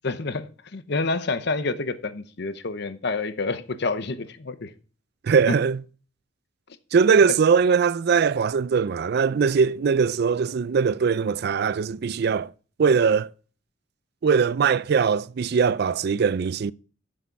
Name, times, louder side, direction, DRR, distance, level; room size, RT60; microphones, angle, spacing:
voice 1, 0.0-4.7 5.5-5.6, left 3 dB, 60° left, 0.8 m, -28 dB
voice 2, 5.2-5.8 6.9-12.5 12.8-13.3 14.2-16.7, right 6 dB, 55° right, 0.4 m, -21 dB
11.0 x 6.5 x 4.6 m
head